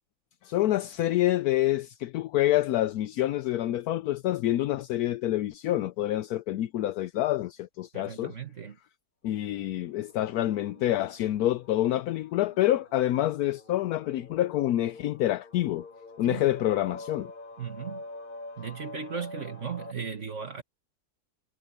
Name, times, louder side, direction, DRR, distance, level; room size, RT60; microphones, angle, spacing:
voice 1, 0.4-8.3 9.2-15.9 16.2-17.3, left 14 dB, 75° left, 1.1 m, -27 dB
voice 2, 7.9-8.8 16.2-16.4 17.6-18.0 18.6-20.6, right 6 dB, 50° right, 1.8 m, -36 dB
sound 1, 9.6-19.9, left 2 dB, 30° left, 4.2 m, -46 dB
omnidirectional pair, 1.6 m